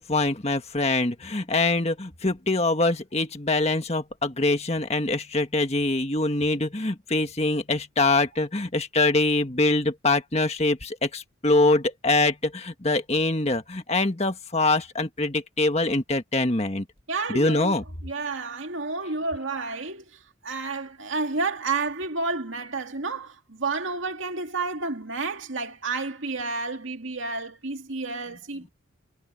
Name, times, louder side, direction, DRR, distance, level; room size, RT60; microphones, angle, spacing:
voice 1, 0.0-16.8 17.3-17.8, left 2 dB, 30° left, 1.6 m, -24 dB
voice 2, 17.1-28.7, right 3 dB, 75° right, 2.2 m, -30 dB
head